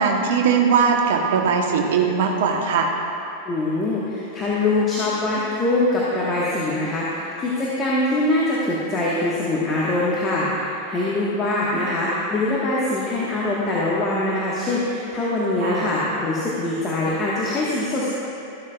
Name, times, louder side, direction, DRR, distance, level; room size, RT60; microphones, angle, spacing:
voice 1, 0.0-2.9 15.6-15.9, right 6 dB, 55° right, 3 dB, 1.0 m, -20 dB
voice 2, 3.4-18.1, left 2 dB, 25° left, -7 dB, 1.5 m, -23 dB
13.5 x 12.0 x 2.4 m, 2.7 s
figure-of-eight pair, 90°, 0 cm